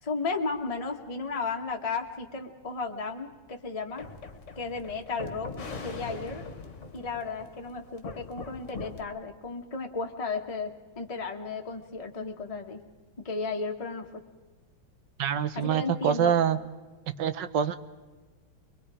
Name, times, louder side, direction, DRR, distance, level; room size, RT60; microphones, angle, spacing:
voice 1, 0.0-4.1 4.6-5.5 5.8-6.5 6.9-12.8 13.2-14.2 15.5-16.3, left 4 dB, 20° left, 2 dB, 1.3 m, -34 dB
sound 1, 4.0-9.1, left 4 dB, 40° left, 1.7 m, -41 dB
voice 2, 15.2-16.6 17.2-17.8, right 8 dB, 65° right, 12 dB, 1.4 m, -25 dB
23.0 x 23.0 x 4.9 m, 1.3 s
omnidirectional pair, 2.3 m